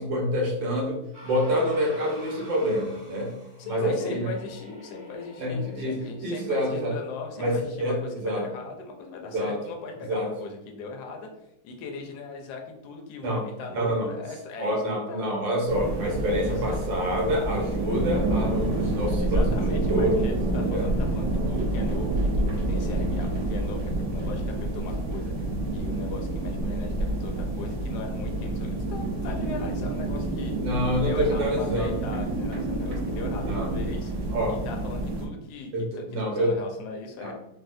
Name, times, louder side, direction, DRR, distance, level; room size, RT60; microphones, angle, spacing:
voice 1, 0.0-3.3 3.6-4.3 5.4-6.9 7.4-8.5 9.3-9.6 10.1-10.3 13.2-13.4 13.7-14.1 14.6-19.5 19.8-20.2 20.5-20.9 30.6-31.9 33.5-33.7 34.3-34.6 35.7-36.6 37.2-37.3, equal, 85° right, -1 dB, 1.6 m, -27 dB
sound 1, 1.1-6.2, left 1 dB, 5° right, 0.7 m, -48 dB
voice 2, 3.6-11.3 11.6-15.3 16.2-16.8 19.2-25.3 25.7-30.5 31.0-34.1 34.5-37.3, left 4 dB, 70° left, 2 dB, 1.1 m, -39 dB
sound 2, 15.7-35.3, right 2 dB, 65° right, 1.1 m, -28 dB
4.1 x 2.1 x 2.6 m, 0.84 s
omnidirectional pair, 2.0 m